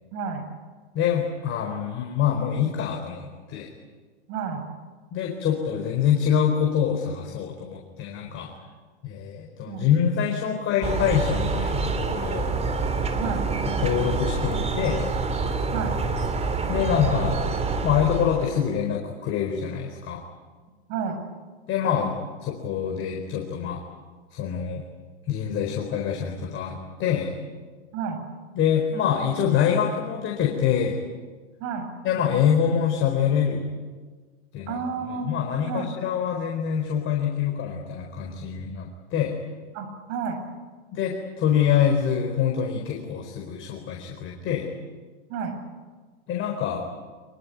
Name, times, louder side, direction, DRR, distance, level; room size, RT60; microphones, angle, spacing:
voice 1, 0.1-0.5 4.3-4.7 9.7-9.9 13.2-13.5 15.7-16.0 20.9-21.2 27.9-28.2 31.6-31.9 34.7-35.3 35.7-35.9 39.7-40.4 45.3-45.6, right 6 dB, 45° right, 7 dB, 7.1 m, -30 dB
voice 2, 0.9-3.7 5.1-8.5 9.0-12.5 13.8-15.0 16.7-17.4 17.8-20.2 21.7-22.1 22.4-23.8 24.3-24.8 25.3-27.3 28.5-31.0 32.0-33.6 34.5-34.8 35.3-39.4 40.9-44.7 46.3-46.8, left 8 dB, 35° left, 1 dB, 4.4 m, -25 dB
sound 1, 10.8-18.8, right 4 dB, 20° right, 3.2 m, -27 dB
25.0 x 23.0 x 9.5 m, 1.4 s
hypercardioid pair, 120°, 34 cm